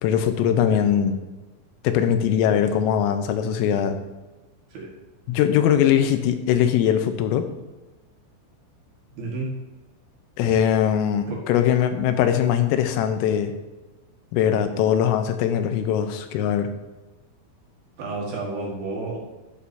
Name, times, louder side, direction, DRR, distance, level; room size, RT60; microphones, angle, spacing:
voice 1, 0.0-1.1 1.9-4.0 5.3-7.5 10.4-13.5 14.3-16.7, left 9 dB, 85° left, 8 dB, 3.5 m, -21 dB
voice 2, 9.1-9.5 10.4-10.6 11.3-11.4 18.0-19.2, right 3 dB, 60° right, -2 dB, 3.2 m, -31 dB
11.5 x 10.5 x 2.9 m, 1.1 s
omnidirectional pair, 5.8 m